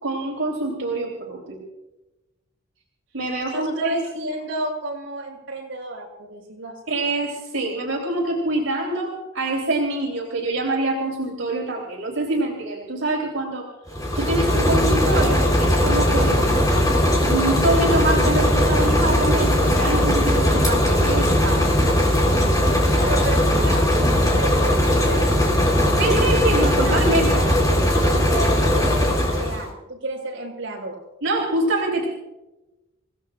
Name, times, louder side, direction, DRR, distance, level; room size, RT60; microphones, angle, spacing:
voice 1, 0.0-1.6 3.1-3.9 6.9-16.5 17.2-21.7 26.0-27.4 31.2-32.1, right 2 dB, 80° right, -2 dB, 3.4 m, -25 dB
voice 2, 3.5-6.7 22.9-25.3 25.6-27.4 27.8-31.0, right 1 dB, 65° right, -3 dB, 6.4 m, -32 dB
sound 1, 13.9-29.7, equal, 20° left, 3.8 m, -19 dB
29.5 x 17.0 x 2.5 m, 1.0 s
head